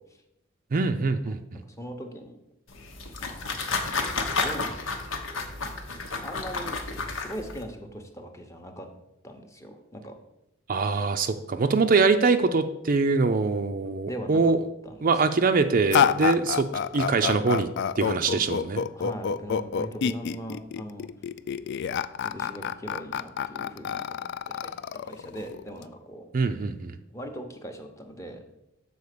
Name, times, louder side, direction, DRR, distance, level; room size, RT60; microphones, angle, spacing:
voice 1, 0.7-1.6 10.7-14.6 15.0-16.7 16.9-17.7 18.0-18.8 26.3-27.0, right 4 dB, 45° right, 8 dB, 0.4 m, -23 dB
voice 2, 1.6-2.4 3.2-3.6 4.4-4.8 6.2-6.8 7.1-8.9 9.2-10.1 14.0-14.5 14.8-15.2 16.2-16.4 18.3-21.1 22.2-24.7 25.0-26.2 27.1-28.6, equal, 15° left, 4 dB, 0.8 m, -40 dB
sound 1, 2.7-7.6, left 3 dB, 85° left, 1.1 m, -31 dB
sound 2, 15.9-25.8, left 7 dB, 60° left, 0.3 m, -28 dB
7.0 x 4.2 x 6.6 m, 0.88 s
head